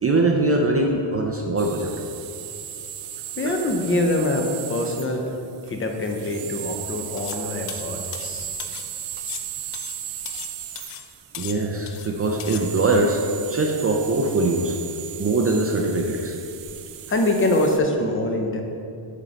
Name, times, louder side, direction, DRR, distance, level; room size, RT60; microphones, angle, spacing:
voice 1, 0.0-1.9 3.4-3.6 11.4-13.2 13.5-14.8 15.2-16.4, right 2 dB, 30° right, 1 dB, 0.4 m, -22 dB
sound 1, 1.6-17.8, right 10 dB, 85° right, 0.6 m, -36 dB
voice 2, 3.4-5.2 5.7-8.5 17.1-18.6, left 1 dB, 25° left, 3 dB, 0.6 m, -24 dB
sound 2, 7.2-7.4 7.7-8.9 9.2-10.5 10.8-11.1 11.3-12.1 12.4-12.6, left 10 dB, 90° left, 0.6 m, -37 dB
7.3 x 5.0 x 4.0 m, 2.6 s
wide cardioid pair, 150°, 50 cm